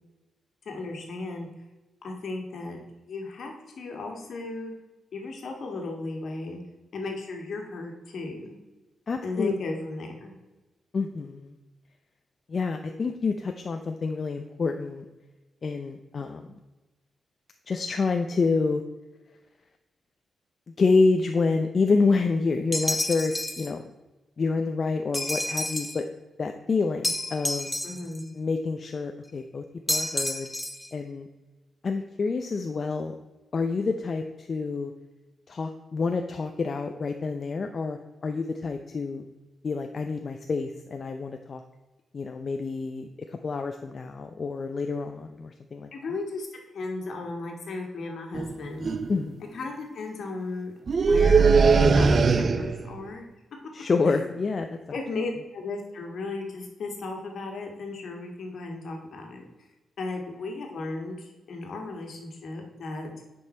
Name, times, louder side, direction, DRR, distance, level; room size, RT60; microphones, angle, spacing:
voice 1, 0.6-1.5 2.0-2.8 3.1-4.7 5.1-6.6 6.9-8.5 9.2-10.3 27.8-28.4 45.9-46.5 46.7-48.9 49.5-50.7 51.1-51.5 51.9-53.3 54.1-54.3 54.9-59.4 60.0-63.1, left 3 dB, 70° left, 2 dB, 1.8 m, -35 dB
voice 2, 9.1-9.5 10.9-11.5 12.5-15.0 15.6-16.5 17.7-18.8 20.8-23.8 24.4-26.0 26.4-27.7 28.3-30.5 30.9-31.3 31.8-33.1 33.5-34.9 35.5-39.3 39.6-41.6 42.1-45.9 49.1-49.4 53.7-54.8, left 4 dB, 45° left, 5 dB, 0.6 m, -28 dB
sound 1, 22.7-23.7 25.1-26.0 27.0-28.2 29.9-30.9, left 1 dB, 10° left, 0.9 m, -30 dB
sound 2, 48.3-48.5 48.8-49.2 50.9-52.9, right 4 dB, 45° right, 0.5 m, -20 dB
9.4 x 5.5 x 4.4 m, 1.1 s
cardioid pair, 95°, 0 cm